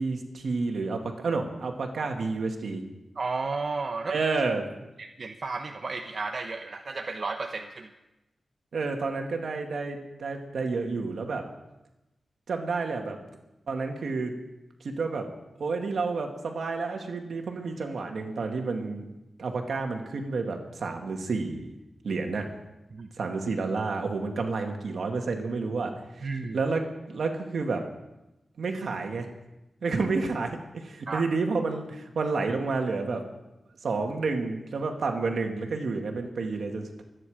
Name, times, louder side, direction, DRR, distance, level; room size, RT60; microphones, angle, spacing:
voice 1, 0.0-2.8 4.1-4.7 8.7-11.5 12.5-13.2 13.7-14.3 14.8-15.2 15.6-19.1 19.4-21.7 22.0-22.5 23.2-26.3 26.5-27.8 28.6-29.3 29.8-33.2 33.8-37.0, right 4 dB, 80° right, 3 dB, 2.2 m, -30 dB
voice 2, 3.2-4.1 5.0-7.9 22.9-23.1 26.2-26.6 31.1-31.2, right 3 dB, 55° right, 4 dB, 1.0 m, -33 dB
25.5 x 10.0 x 5.0 m, 0.97 s
wide cardioid pair, 100°, 0 cm